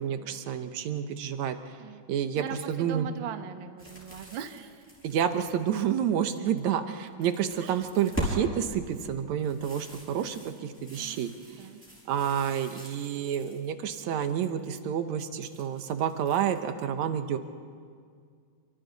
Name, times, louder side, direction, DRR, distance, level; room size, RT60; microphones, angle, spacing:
voice 1, 0.0-1.8 2.1-3.1 5.0-11.7 12.1-17.4, right 9 dB, 70° right, 8 dB, 2.1 m, -29 dB
voice 2, 2.3-4.9 7.6-7.8 10.2-10.5 11.0-11.2 11.5-11.8, right 9 dB, 85° right, 7 dB, 1.0 m, -40 dB
sound 1, 3.8-6.6 7.0-8.4 8.8-13.7 14.0-14.6 15.2-16.6, equal, 5° left, 5.5 m, -41 dB
28.0 x 24.0 x 4.1 m, 2.1 s
omnidirectional pair, 3.7 m